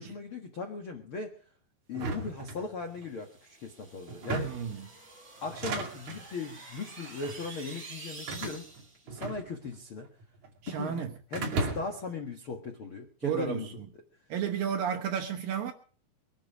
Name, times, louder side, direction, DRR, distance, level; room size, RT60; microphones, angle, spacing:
voice 1, 0.0-1.4 1.9-4.6 5.4-8.6 9.1-10.1 10.7-13.7, left 4 dB, 65° left, 1.3 m, -38 dB
sound 1, 1.9-3.1 4.1-4.8 5.4-6.3 7.1-7.4 8.3-9.8 10.1-10.8 11.3-12.1, right 3 dB, 45° right, 3.3 m, -36 dB
sound 2, 3.1-9.0, right 3 dB, 25° right, 5.8 m, -48 dB
voice 2, 4.4-4.9 10.6-11.1 13.2-13.9 14.3-15.7, right 8 dB, 70° right, 2.4 m, -32 dB
22.5 x 10.5 x 4.9 m
omnidirectional pair, 5.1 m